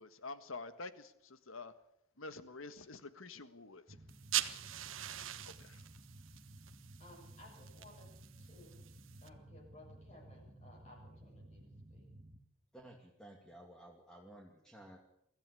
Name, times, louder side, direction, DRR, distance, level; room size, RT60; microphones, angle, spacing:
voice 1, 0.0-1.7 2.2-3.8 5.4-5.8, left 3 dB, 75° left, 11 dB, 1.7 m, -48 dB
sound 1, 3.9-12.4, right 1 dB, 25° right, 1.6 m, -56 dB
sound 2, 4.1-9.3, right 12 dB, 70° right, 1.3 m, -43 dB
voice 2, 7.0-8.1 8.4-8.9 9.2-11.6 11.9-12.1, left 1 dB, 35° left, -3 dB, 7.5 m, -59 dB
voice 3, 12.7-15.0, right 1 dB, 5° left, 0 dB, 2.5 m, -55 dB
24.0 x 15.0 x 8.5 m, 0.77 s
head